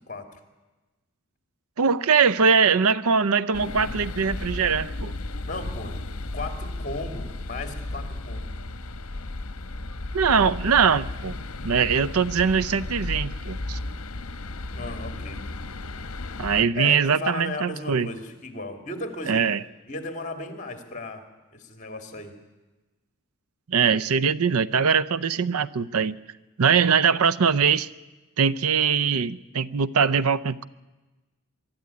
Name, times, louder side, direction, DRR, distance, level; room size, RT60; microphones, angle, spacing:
voice 1, 0.1-0.4 5.4-6.0 6.3-8.5 14.7-15.5 16.7-19.4 19.9-21.2 21.5-22.4, left 2 dB, 35° left, 6 dB, 2.5 m, -35 dB
voice 2, 1.8-5.1 10.1-11.3 11.6-13.8 16.4-18.1 19.3-19.6 23.7-26.2 26.6-27.9 28.4-30.7, right 6 dB, 80° right, 17 dB, 0.6 m, -22 dB
sound 1, 3.5-16.6, left 2 dB, 75° left, 1.0 m, -34 dB
23.5 x 13.0 x 9.6 m, 1.2 s
head